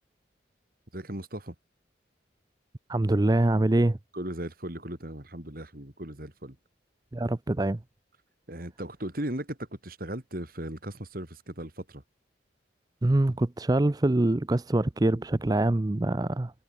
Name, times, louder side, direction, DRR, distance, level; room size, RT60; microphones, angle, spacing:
voice 1, 0.9-1.6 4.1-6.6 8.5-12.0, right 1 dB, 50° right, 3.5 m, -37 dB
voice 2, 2.9-4.0 7.1-7.8 13.0-16.5, right 1 dB, 20° right, 0.5 m, -24 dB
head